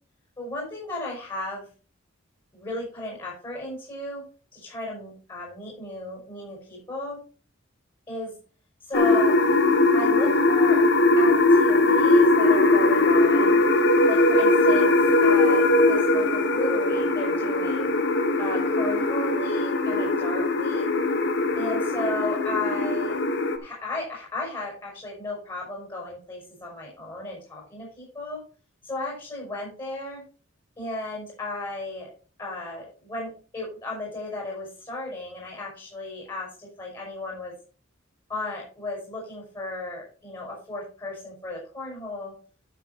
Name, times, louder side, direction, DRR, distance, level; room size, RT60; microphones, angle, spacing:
voice 1, 0.4-1.6 2.5-4.2 4.5-7.2 8.1-8.3 8.9-9.3 9.9-10.8 11.2-13.6 14.1-14.9 15.2-17.9 18.4-20.9 21.6-23.1 23.6-28.4 28.8-30.2 30.8-32.1 32.4-37.5 38.3-42.3, left 2 dB, 25° left, -2 dB, 5.6 m, -35 dB
sound 1, 8.9-23.6, left 2 dB, 60° left, 1.4 m, -20 dB
12.5 x 6.4 x 4.4 m, 0.38 s
head